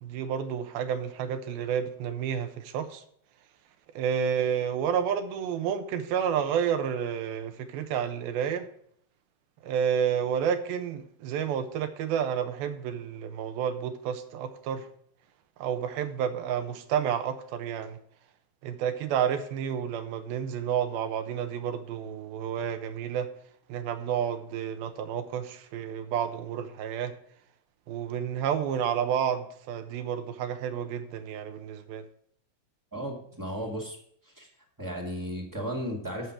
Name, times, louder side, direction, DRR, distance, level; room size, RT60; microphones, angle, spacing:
voice 1, 0.0-3.0 4.0-8.7 9.6-14.9 15.6-18.0 18.6-23.3 23.7-27.1 27.9-32.0, right 8 dB, 80° right, 8 dB, 2.8 m, -30 dB
voice 2, 32.9-34.0 34.3-34.5 34.8-36.3, equal, 10° right, -1 dB, 0.9 m, -34 dB
11.5 x 6.4 x 5.9 m, 0.66 s
omnidirectional pair, 4.4 m